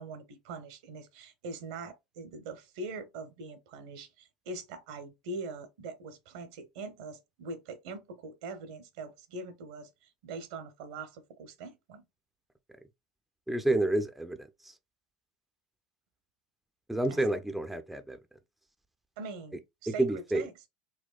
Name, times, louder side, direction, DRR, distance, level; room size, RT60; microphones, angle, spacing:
voice 1, 0.0-12.0 17.1-17.2 19.2-20.5, right 3 dB, 70° right, 0.9 m, -42 dB
voice 2, 13.5-14.7 16.9-18.2 19.9-20.5, right 2 dB, 5° right, 0.5 m, -29 dB
4.2 x 2.2 x 2.3 m
hypercardioid pair, 85°, 3 cm